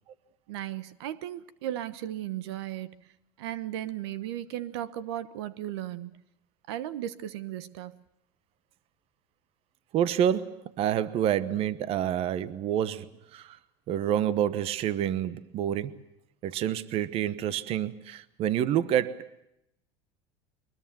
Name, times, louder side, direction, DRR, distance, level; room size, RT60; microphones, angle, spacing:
voice 1, 0.5-3.1 3.4-6.1 6.7-8.0, right 12 dB, 85° right, 1.2 m, -36 dB
voice 2, 9.9-13.6 13.9-16.0 16.4-19.4, right 10 dB, 45° right, 1.1 m, -28 dB
23.0 x 20.5 x 7.6 m
supercardioid pair, 135°, 14 cm